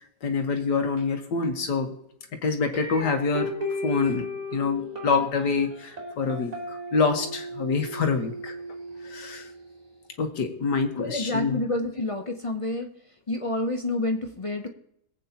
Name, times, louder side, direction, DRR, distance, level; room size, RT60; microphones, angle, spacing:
voice 1, 0.2-1.9 2.4-3.5 3.8-8.5 9.0-9.5 10.2-11.6, left 4 dB, 80° left, 5 dB, 1.9 m, -26 dB
sound 1, 2.7-9.8, left 1 dB, 25° right, 2.6 m, -36 dB
voice 2, 11.0-12.9 13.3-14.7, left 2 dB, 55° left, 4 dB, 0.3 m, -28 dB
22.0 x 8.3 x 2.9 m, 0.74 s
omnidirectional pair, 1.8 m